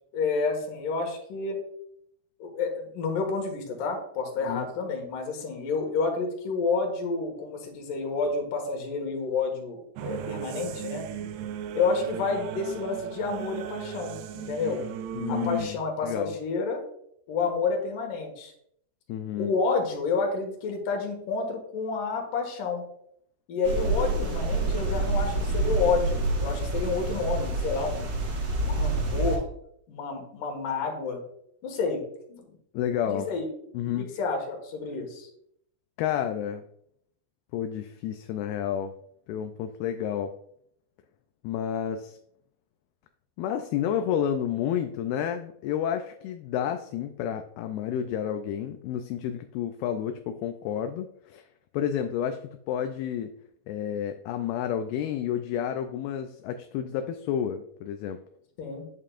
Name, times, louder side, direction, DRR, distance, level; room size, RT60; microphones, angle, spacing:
voice 1, 0.1-1.6 2.4-11.0 11.7-14.8 15.3-16.8 17.3-18.5 19.4-22.8 23.5-28.1 28.6-29.4 29.9-31.2 31.6-32.6 33.1-33.5 33.8-35.3 58.6-58.9, left 4 dB, 60° left, 2 dB, 2.9 m, -29 dB
sound 1, 10.0-15.7, right 9 dB, 90° right, 2.0 m, -36 dB
voice 2, 15.1-16.3 19.1-19.5 32.7-33.3 33.7-34.1 36.0-36.6 37.5-38.9 39.3-40.3 41.4-42.2 43.4-51.4 51.7-53.3 53.7-58.2, left 9 dB, 80° left, 6 dB, 2.4 m, -30 dB
sound 2, 23.6-29.4, right 2 dB, 65° right, 3.9 m, -27 dB
9.1 x 8.5 x 2.5 m, 0.70 s
omnidirectional pair, 4.7 m